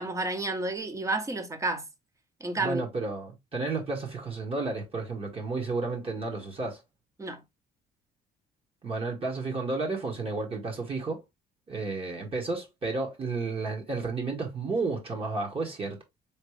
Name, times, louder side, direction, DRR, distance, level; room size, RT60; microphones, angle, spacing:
voice 1, 0.0-1.8 2.4-2.8 7.2-7.4, right 2 dB, 20° right, 1.0 m, -30 dB
voice 2, 2.6-6.8 8.8-11.2 11.7-16.0, right 3 dB, 35° right, 1.5 m, -32 dB
3.9 x 3.3 x 3.2 m
cardioid pair, 110°, 17 cm